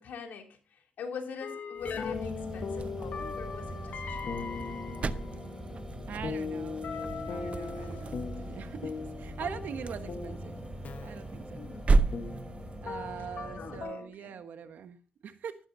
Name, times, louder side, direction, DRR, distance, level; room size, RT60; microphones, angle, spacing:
voice 1, 0.0-4.3 11.6-11.9 13.6-14.3, left 5 dB, 85° left, 3 dB, 2.9 m, -43 dB
sound 1, 1.4-14.1, left 5 dB, 65° left, 1.4 m, -39 dB
sound 2, 1.8-13.8, right 1 dB, 10° right, 3.4 m, -42 dB
sound 3, 1.8-12.9, right 3 dB, 45° right, 0.7 m, -35 dB
voice 2, 6.1-7.0 7.3-10.6 11.0-11.6 12.8-15.0 15.2-15.6, right 7 dB, 80° right, 9 dB, 1.3 m, -42 dB
13.5 x 12.0 x 2.8 m, 0.36 s
cardioid pair, 80°, 3 cm